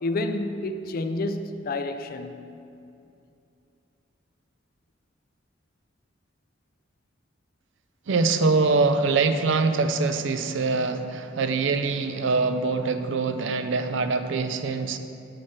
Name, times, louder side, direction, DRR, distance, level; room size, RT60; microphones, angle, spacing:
voice 1, 0.0-2.5, left 2 dB, 50° left, 0.4 m, -29 dB
voice 2, 8.1-15.0, right 4 dB, 70° right, 0.4 m, -24 dB
7.7 x 5.9 x 4.4 m
head